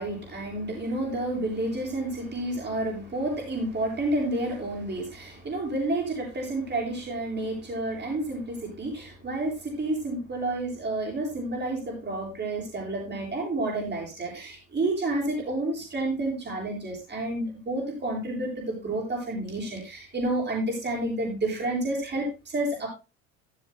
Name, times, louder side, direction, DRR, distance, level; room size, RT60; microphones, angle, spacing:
voice 1, 0.0-22.9, right 2 dB, 30° right, -1 dB, 7.4 m, -30 dB
15.5 x 12.0 x 2.3 m, 0.28 s
supercardioid pair, 95°, 36 cm